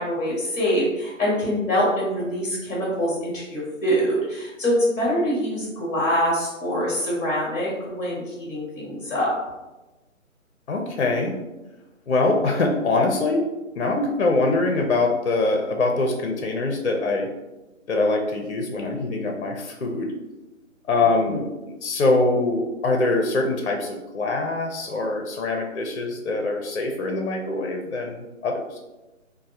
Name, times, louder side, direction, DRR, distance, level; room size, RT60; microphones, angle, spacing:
voice 1, 0.0-9.3 21.0-21.4, equal, 10° left, -6 dB, 0.9 m, -24 dB
voice 2, 10.7-11.4 12.1-13.5 13.8-17.3 17.9-20.1 20.9-28.8, left 2 dB, 55° left, 2 dB, 0.5 m, -23 dB
3.1 x 2.1 x 2.6 m, 1.1 s
figure-of-eight pair, 145°, 41 cm